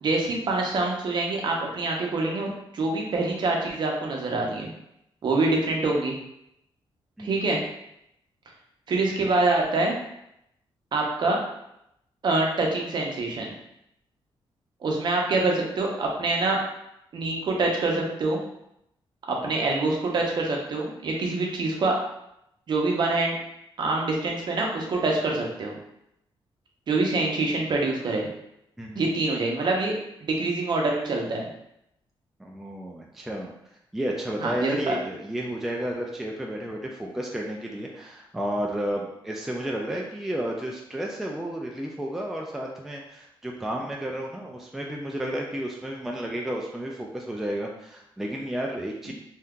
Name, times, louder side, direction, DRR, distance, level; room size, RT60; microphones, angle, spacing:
voice 1, 0.0-2.5 2.7-4.7 5.2-6.2 7.2-7.6 8.9-9.9 10.9-11.4 12.2-13.5 14.8-16.6 17.1-18.4 19.3-21.9 22.7-23.3 23.8-25.7 26.9-28.3 28.9-29.9 30.2-31.5 34.4-34.9 49.1-49.2, right 2 dB, 50° right, 0 dB, 0.7 m, -25 dB
voice 2, 28.8-29.1 32.4-33.5 33.9-49.1, right 1 dB, 5° right, -1 dB, 0.3 m, -32 dB
2.7 x 2.3 x 3.6 m, 0.79 s
wide cardioid pair, 135°, 10 cm